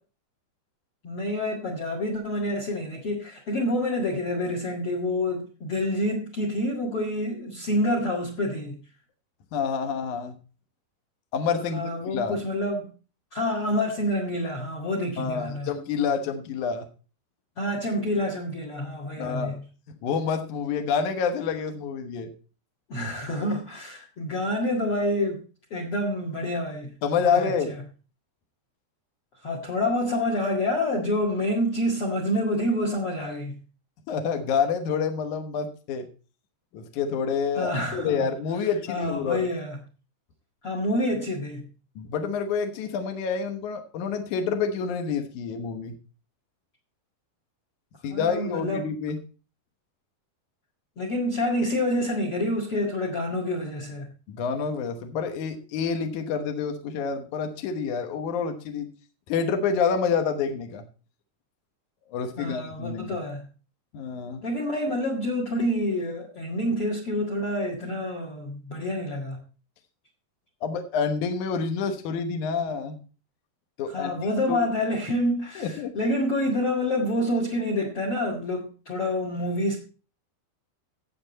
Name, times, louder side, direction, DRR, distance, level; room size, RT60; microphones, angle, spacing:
voice 1, 1.0-8.8 11.7-12.9 13.3-15.7 17.6-19.6 22.9-25.4 25.7-26.9 27.2-27.7 29.4-33.6 37.6-38.3 38.9-39.8 40.6-41.7 48.1-48.9 51.0-54.1 62.4-63.5 64.4-69.4 73.9-79.8, left 1 dB, 45° left, 1.8 m, -27 dB
voice 2, 9.5-10.3 11.3-12.4 15.2-16.9 19.2-19.6 20.0-22.3 27.0-27.7 34.1-36.1 36.7-39.5 42.0-45.9 48.0-49.2 54.3-58.9 59.3-60.8 62.1-63.2 63.9-64.4 70.6-73.0 73.8-74.6 75.6-75.9, left 6 dB, 75° left, 1.8 m, -28 dB
14.5 x 7.9 x 4.1 m
omnidirectional pair, 5.2 m